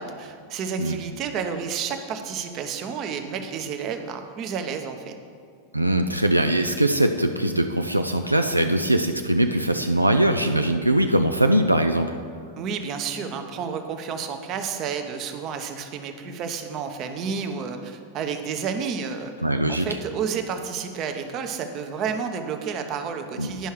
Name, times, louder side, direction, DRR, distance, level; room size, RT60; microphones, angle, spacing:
voice 1, 0.0-5.1 12.6-19.3 19.7-23.7, right 6 dB, 35° right, 6 dB, 0.8 m, -31 dB
voice 2, 5.7-12.1 19.4-19.9 23.4-23.5, right 1 dB, 85° right, 6 dB, 0.3 m, -21 dB
10.5 x 5.5 x 4.7 m, 2.2 s
figure-of-eight pair, 90°, 0 cm